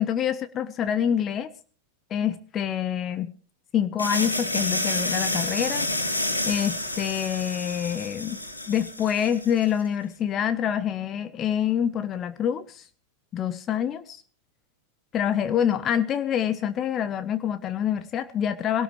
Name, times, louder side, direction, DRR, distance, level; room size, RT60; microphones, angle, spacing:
voice 1, 0.0-1.5 2.1-3.3 3.7-5.9 6.4-8.4 8.7-12.8 13.3-14.2 15.1-18.8, left 9 dB, 30° left, 12 dB, 0.9 m, -26 dB
sound 1, 4.0-9.7, left 1 dB, 85° left, 2.5 m, -29 dB
21.5 x 17.5 x 3.3 m, 0.40 s
figure-of-eight pair, 90°, 0 cm